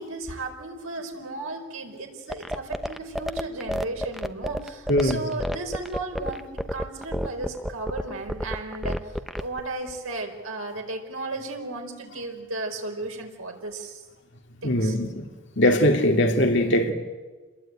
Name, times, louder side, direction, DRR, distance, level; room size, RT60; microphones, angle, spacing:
voice 1, 0.0-9.0 9.4-14.0 14.6-15.0, right 2 dB, 90° right, 4.6 m, -35 dB
sound 1, 2.3-9.6, equal, ahead, 0.8 m, -29 dB
voice 2, 4.9-5.3 14.6-15.3 15.6-16.9, left 1 dB, 60° left, 2.8 m, -21 dB
29.0 x 21.0 x 9.0 m
head